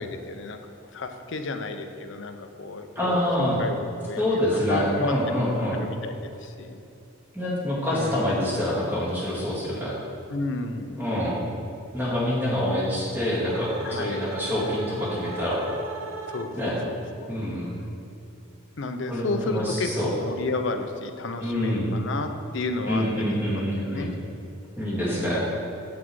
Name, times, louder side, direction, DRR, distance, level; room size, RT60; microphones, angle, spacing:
voice 1, 0.0-5.1 5.7-6.8 7.9-8.3 10.3-11.0 13.8-14.2 14.6-14.9 16.3-17.4 18.8-24.1 25.1-25.4, left 3 dB, 60° left, 6 dB, 0.6 m, -32 dB
voice 2, 2.9-3.6 4.2-5.8 7.3-9.9 11.0-11.4 11.9-15.6 16.5-16.8 17.3-17.7 19.1-20.1 21.4-21.9 22.9-24.1 24.8-25.4, left 1 dB, 10° right, -7 dB, 1.8 m, -26 dB
sound 1, 12.6-16.8, right 3 dB, 70° right, 0.7 m, -37 dB
8.3 x 6.1 x 4.6 m, 2.6 s
head